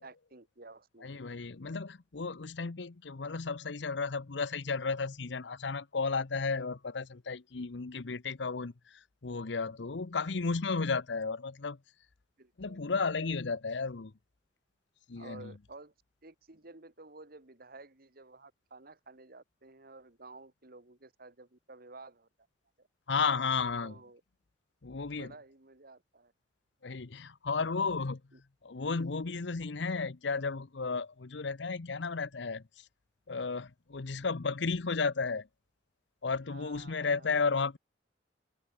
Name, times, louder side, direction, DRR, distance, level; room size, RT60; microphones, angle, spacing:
voice 1, 0.0-1.2 12.4-12.8 13.2-13.3 15.2-15.9 16.2-22.3 22.8-22.9 23.8-24.2 25.1-26.3 28.3-28.4 36.5-37.3, right 3 dB, 55° right, 2.2 m, -52 dB
voice 2, 1.0-11.8 12.6-14.1 15.1-15.5 23.1-23.9 24.8-25.3 26.8-28.2 28.6-32.6 33.3-35.5 36.2-37.8, left 4 dB, 70° left, 0.8 m, -33 dB
open air
head